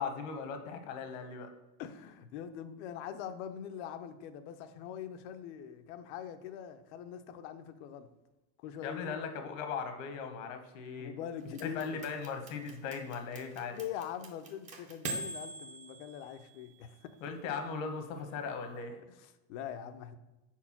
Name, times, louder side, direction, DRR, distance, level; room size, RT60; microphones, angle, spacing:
voice 1, 0.0-1.5 8.8-11.1 11.6-13.8 17.2-19.0, left 5 dB, 75° left, 6 dB, 1.2 m, -38 dB
voice 2, 1.8-8.1 8.6-9.1 10.9-12.0 13.7-17.2 19.1-20.2, left 9 dB, 60° left, 10 dB, 0.6 m, -43 dB
sound 1, 11.5-16.9, right 2 dB, 20° right, 0.5 m, -43 dB
4.5 x 4.4 x 5.8 m, 1.0 s
cardioid pair, 180°, 38 cm